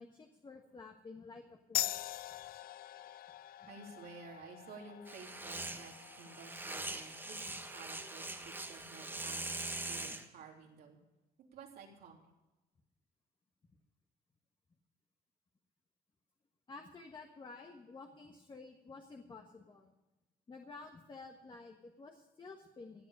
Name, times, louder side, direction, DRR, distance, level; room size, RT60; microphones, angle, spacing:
voice 1, 0.0-2.0 3.6-3.7 16.7-19.9 20.5-23.1, left 3 dB, 30° left, 3 dB, 1.4 m, -52 dB
sound 1, 1.7-8.8, left 13 dB, 70° left, 0.5 m, -44 dB
voice 2, 3.7-11.0 11.5-12.3, right 4 dB, 80° right, 0 dB, 3.3 m, -53 dB
sound 2, 5.1-10.2, right 2 dB, 15° right, 1.5 m, -42 dB
17.0 x 8.2 x 6.8 m, 1.0 s
cardioid pair, 110°, 16 cm